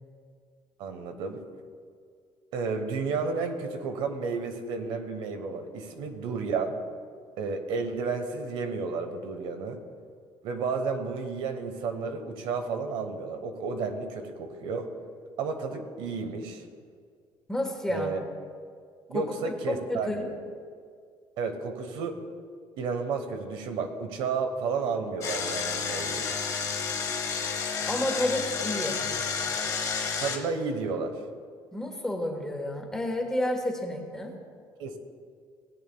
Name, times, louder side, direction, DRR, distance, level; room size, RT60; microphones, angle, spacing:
voice 1, 0.8-1.4 2.5-6.8 7.4-9.8 10.4-14.9 15.4-16.6 17.9-18.2 19.1-20.3 21.4-22.1 22.8-26.3 30.2-31.1 34.8-35.0, right 4 dB, 80° right, 6 dB, 1.1 m, -32 dB
voice 2, 17.5-18.2 19.1-20.3 27.9-29.0 31.7-34.3, left 1 dB, 5° left, 1 dB, 1.3 m, -30 dB
Engine, 25.2-30.4, left 5 dB, 40° left, 1.2 m, -30 dB
17.5 x 8.7 x 2.3 m, 2.1 s
cardioid pair, 150°, 9 cm